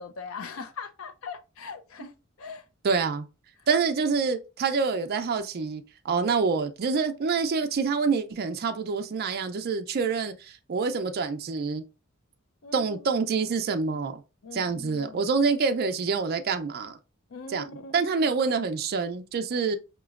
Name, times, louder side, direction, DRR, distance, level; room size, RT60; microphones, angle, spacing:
voice 1, 0.0-2.1 2.4-2.6 3.6-3.7 12.6-13.2 14.4-15.3 17.3-18.1, left 4 dB, 70° left, 0.5 m, -41 dB
voice 2, 2.8-3.3 3.7-11.8 12.7-14.2 14.5-17.0 17.5-19.8, right 5 dB, 50° right, 0.4 m, -26 dB
4.9 x 2.9 x 2.4 m
head